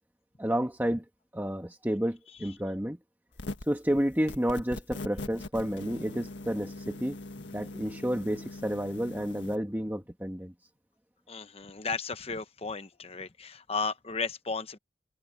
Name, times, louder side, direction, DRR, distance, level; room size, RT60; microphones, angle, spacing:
voice 1, 0.4-1.0 1.3-3.0 3.7-7.2 7.5-10.5, equal, 10° right, 1.3 m, -30 dB
sound 1, 3.3-3.8 4.3-9.6, left 2 dB, 90° left, 1.6 m, -41 dB
voice 2, 11.3-14.8, left 4 dB, 35° left, 1.0 m, -34 dB
head